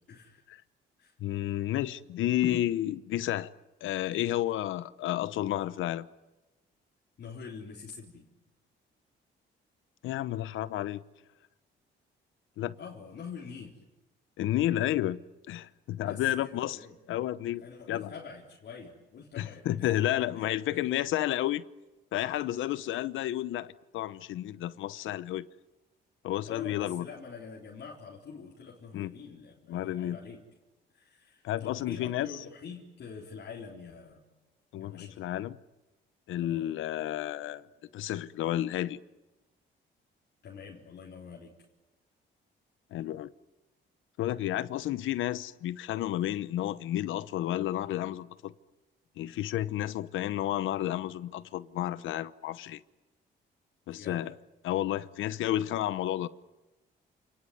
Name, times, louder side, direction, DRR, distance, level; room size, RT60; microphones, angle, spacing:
voice 1, 0.1-0.5 1.0-1.1 7.2-8.3 12.8-13.8 16.0-17.0 17.6-20.0 20.3-20.8 26.4-30.4 30.9-34.2 34.8-35.2 36.5-36.7 40.4-41.6 53.9-54.3, left 5 dB, 60° left, 4.0 m, -46 dB
voice 2, 1.2-3.5 3.8-6.1 10.0-11.0 12.6-12.8 14.4-15.2 15.5-16.8 17.1-17.6 17.9-18.1 19.4-21.6 22.1-25.5 26.2-27.0 28.9-29.1 29.7-30.2 31.4-32.3 34.7-35.6 36.3-37.7 37.9-39.0 42.9-43.3 44.2-48.5 49.2-52.8 53.9-54.3 54.6-56.3, left 13 dB, 80° left, 0.9 m, -31 dB
29.0 x 19.0 x 9.5 m
cardioid pair, 90°, 20 cm